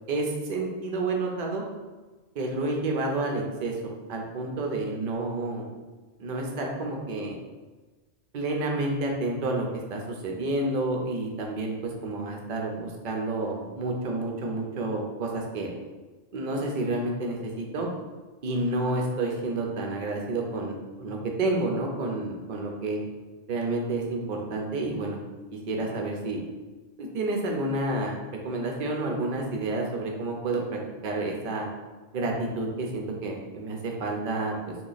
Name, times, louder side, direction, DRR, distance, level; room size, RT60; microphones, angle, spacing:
voice 1, 0.1-1.6 2.3-5.6 6.2-7.4 8.3-15.7 16.3-17.9 18.4-23.0 23.5-25.2 25.5-26.4 27.0-28.2 28.4-31.7 32.1-34.7, right 2 dB, 55° right, 0 dB, 0.6 m, -30 dB
2.9 x 2.3 x 3.9 m, 1.3 s
omnidirectional pair, 1.2 m